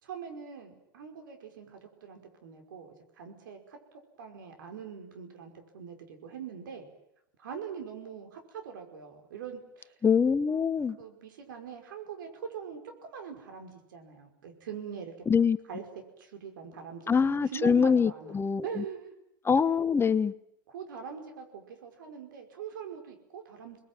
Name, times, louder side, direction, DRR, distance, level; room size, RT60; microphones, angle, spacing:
voice 1, 0.0-3.8 4.2-6.9 7.4-9.9 11.0-15.1 15.7-15.9 16.2-17.2 17.5-18.4 18.6-19.1 20.7-23.8, right 7 dB, 85° right, 5.4 m, -42 dB
voice 2, 10.0-11.0 15.3-15.6 17.1-18.8 19.4-20.3, left 6 dB, 20° left, 1.2 m, -24 dB
28.5 x 21.0 x 9.2 m
hypercardioid pair, 90°, 11 cm